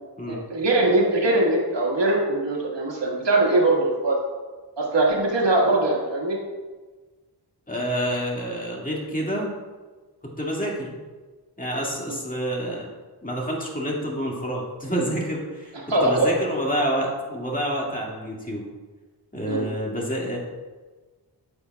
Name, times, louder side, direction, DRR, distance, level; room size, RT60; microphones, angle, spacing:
voice 1, 0.3-4.2 4.8-6.4 15.9-16.3 19.5-19.6, right 2 dB, 75° right, -2 dB, 1.7 m, -21 dB
voice 2, 7.7-9.5 10.4-10.9 11.6-12.9 13.2-15.7 16.0-18.6 19.3-20.4, equal, 20° left, -2 dB, 2.1 m, -28 dB
8.8 x 6.9 x 2.3 m, 1.3 s
cardioid pair, 45°, 43 cm